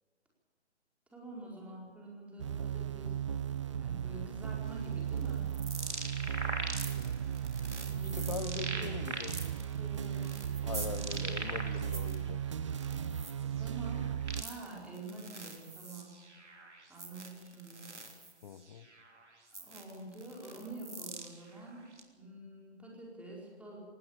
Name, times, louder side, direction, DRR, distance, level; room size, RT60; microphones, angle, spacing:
voice 1, 1.1-5.5 7.8-8.8 9.8-11.3 13.4-14.1 14.4-16.1 16.9-17.9 19.5-23.8, right 2 dB, 5° right, -3 dB, 4.6 m, -47 dB
sound 1, 2.4-14.4, right 9 dB, 30° right, 0.5 m, -36 dB
sound 2, 4.7-12.2 12.6-22.0, right 2 dB, 85° right, 3.2 m, -43 dB
voice 2, 8.1-9.4 10.6-12.6 18.4-18.9, left 7 dB, 35° left, 16 dB, 0.7 m, -42 dB
19.5 x 18.0 x 7.5 m, 1.5 s
figure-of-eight pair, 135°, 34 cm